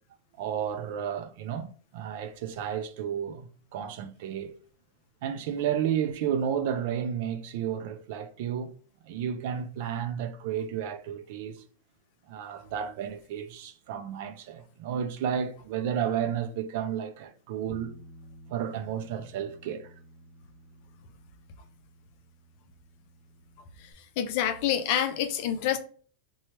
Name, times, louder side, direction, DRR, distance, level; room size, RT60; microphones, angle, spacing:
voice 1, 0.4-4.5 5.2-8.7 9.0-11.6 12.3-18.0 18.5-19.9, right 8 dB, 65° right, 0.4 m, -32 dB
Bass guitar, 17.7-23.9, equal, 10° right, 0.8 m, -53 dB
voice 2, 24.2-25.8, left 10 dB, 60° left, 0.5 m, -27 dB
3.1 x 2.3 x 2.9 m
hypercardioid pair, 115°, 0 cm